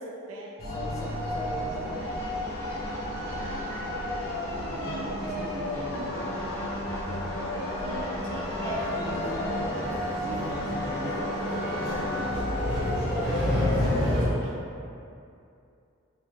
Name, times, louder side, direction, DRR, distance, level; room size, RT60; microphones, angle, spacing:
voice 1, 0.0-0.6 7.5-9.0 13.2-14.6, right 2 dB, 80° right, -2 dB, 0.3 m, -40 dB
sound 1, 0.6-14.3, left 1 dB, 90° left, 0.7 m, -32 dB
voice 2, 0.7-1.9 4.6-6.3 8.8-11.4 11.7-12.4 13.6-14.0, equal, 15° left, -4 dB, 0.3 m, -38 dB
sound 2, 0.8-14.1, left 1 dB, 5° right, 0.8 m, -41 dB
sound 3, 8.7-14.2, left 1 dB, 50° right, 1.1 m, -31 dB
2.5 x 2.4 x 3.0 m, 2.5 s
head